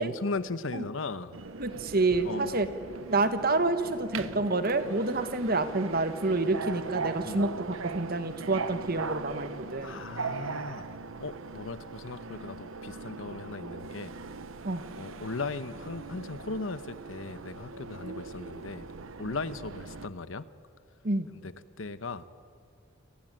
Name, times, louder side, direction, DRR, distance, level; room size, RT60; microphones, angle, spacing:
voice 1, 0.0-1.4 2.2-2.6 7.3-7.5 9.8-10.8 11.2-14.1 15.0-18.8 19.2-20.5 21.4-21.5 21.8-22.2, left 3 dB, 70° left, 14 dB, 1.0 m, -37 dB
Subway metro underground, 1.3-20.1, right 4 dB, 80° right, 0.9 m, -40 dB
voice 2, 1.6-2.7 3.1-10.0 14.6-14.8 21.0-21.3, right 2 dB, 45° right, 10 dB, 1.5 m, -28 dB
29.0 x 18.5 x 9.0 m, 2.5 s
head